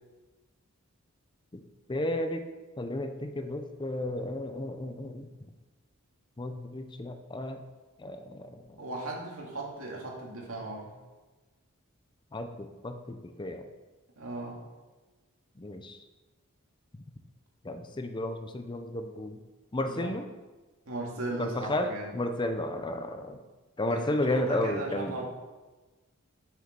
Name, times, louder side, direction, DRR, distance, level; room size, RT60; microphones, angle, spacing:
voice 1, 1.9-2.5 2.8-5.3 6.4-7.6 8.0-8.6 12.3-13.6 15.6-16.0 17.6-19.4 19.7-20.3 21.4-23.4 23.8-25.1, left 1 dB, 20° left, 7 dB, 0.6 m, -33 dB
voice 2, 8.8-10.9 14.2-14.6 19.9-20.1 20.9-22.2 23.9-25.3, right 2 dB, 70° right, -2 dB, 2.4 m, -37 dB
7.7 x 6.8 x 6.6 m, 1.2 s
head